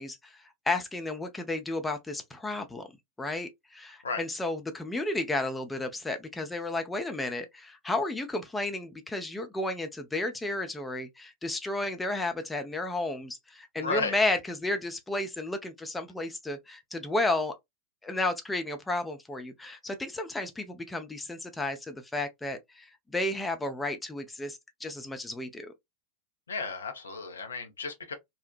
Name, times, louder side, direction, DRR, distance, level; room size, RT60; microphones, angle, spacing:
voice 1, 0.0-2.9 3.2-17.5 18.0-25.7, left 2 dB, 10° left, 0.4 m, -32 dB
voice 2, 13.8-14.2 26.5-28.1, left 4 dB, 70° left, 0.6 m, -33 dB
2.7 x 2.1 x 2.4 m
figure-of-eight pair, 90°, 0 cm